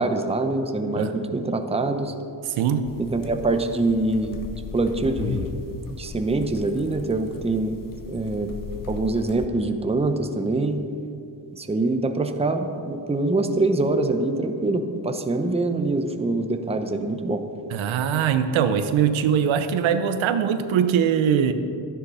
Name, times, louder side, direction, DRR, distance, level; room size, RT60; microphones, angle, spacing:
voice 1, 0.0-2.1 3.0-4.4 4.7-5.5 5.9-7.8 8.1-8.5 8.9-10.8 11.5-17.4, right 2 dB, 15° right, 6 dB, 0.8 m, -24 dB
sound 1, 1.7-3.4, left 1 dB, 75° left, 3.8 m, -44 dB
sound 2, 2.8-9.5, left 5 dB, 45° left, 1.0 m, -36 dB
voice 2, 17.7-21.5, right 8 dB, 85° right, 9 dB, 1.0 m, -21 dB
13.0 x 10.5 x 5.6 m, 2.5 s
cardioid pair, 110°, 46 cm